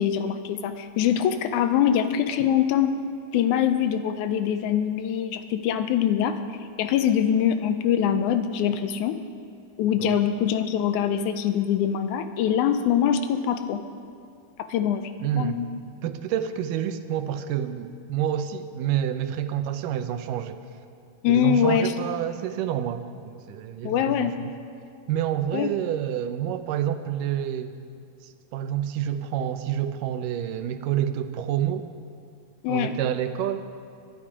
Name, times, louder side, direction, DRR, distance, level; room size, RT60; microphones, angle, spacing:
voice 1, 0.0-3.0 3.3-6.4 6.8-9.2 9.8-13.8 14.6-15.7 21.2-21.9 23.8-24.3 25.5-25.7 32.6-32.9, left 9 dB, 80° left, 10 dB, 1.9 m, -23 dB
voice 2, 15.2-15.6 16.0-20.6 21.3-24.3 25.1-27.7 28.2-31.9 32.7-33.6, right 10 dB, 80° right, 10 dB, 2.3 m, -28 dB
22.0 x 11.0 x 4.9 m, 2.4 s
omnidirectional pair, 3.8 m